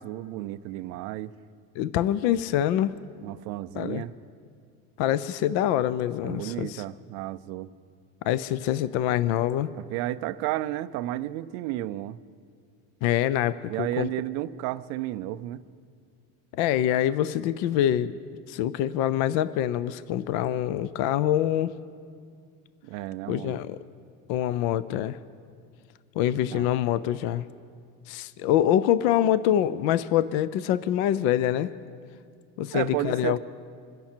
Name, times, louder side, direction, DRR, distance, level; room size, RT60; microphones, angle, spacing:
voice 1, 0.0-1.3 3.2-4.1 6.2-7.7 9.8-12.2 13.7-15.6 22.8-23.6 26.5-26.7 32.7-33.4, right 15 dB, 40° right, 13 dB, 0.4 m, -32 dB
voice 2, 1.8-2.9 3.8-4.0 5.0-6.8 8.2-9.7 13.0-14.1 16.6-18.2 18.5-21.7 23.3-23.8 24.3-25.2 26.2-27.5 28.1-31.7 32.6-33.4, left 11 dB, 45° left, 16 dB, 0.4 m, -25 dB
26.5 x 10.5 x 4.4 m, 2.2 s
supercardioid pair, 160°, 44 cm